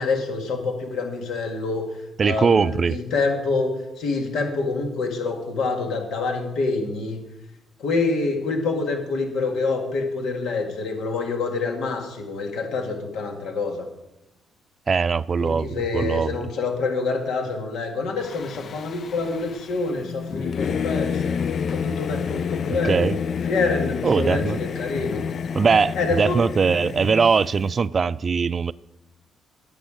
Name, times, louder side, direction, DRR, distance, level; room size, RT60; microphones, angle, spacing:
voice 1, 0.0-1.9 2.2-7.2 7.8-13.9 15.4-21.4 21.7-23.1 23.4-25.2 25.9-26.4, left 3 dB, 80° left, 1.9 m, -26 dB
voice 2, 2.2-3.0 14.9-16.5 22.7-23.2 24.0-24.6 25.5-28.7, right 5 dB, 40° right, 0.3 m, -21 dB
Singing / Musical instrument, 18.2-27.8, left 7 dB, 55° left, 0.3 m, -29 dB
10.5 x 8.2 x 5.0 m
cardioid pair, 90°, 0 cm